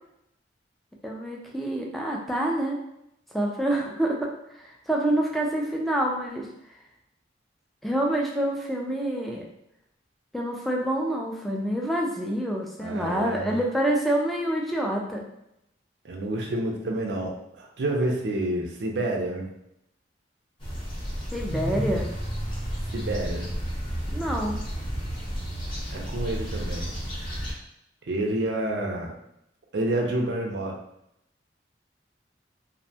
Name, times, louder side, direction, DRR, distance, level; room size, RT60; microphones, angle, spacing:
voice 1, 1.0-2.8 3.3-6.5 7.8-9.4 10.3-15.2 21.3-22.1 24.1-24.6, right 1 dB, ahead, -2 dB, 0.3 m, -27 dB
voice 2, 12.8-13.6 16.0-19.5 22.9-23.5 25.9-26.9 28.1-29.1 29.7-30.8, right 1 dB, 65° right, 1 dB, 0.5 m, -29 dB
sound 1, 20.6-27.5, equal, 30° left, 0.8 m, -32 dB
2.6 x 2.1 x 2.7 m, 0.81 s
head